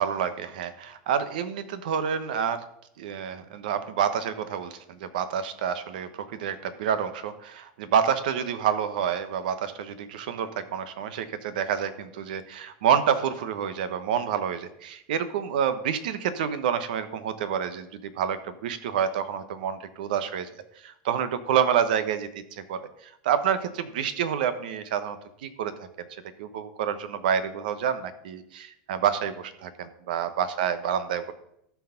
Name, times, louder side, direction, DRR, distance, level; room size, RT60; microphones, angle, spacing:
voice 1, 0.0-2.6 3.0-20.5 20.8-22.9 23.2-25.7 26.0-26.1 26.4-31.3, right 8 dB, 80° right, 11 dB, 1.1 m, -28 dB
13.0 x 4.7 x 5.8 m, 0.76 s
supercardioid pair, 130°, 5 cm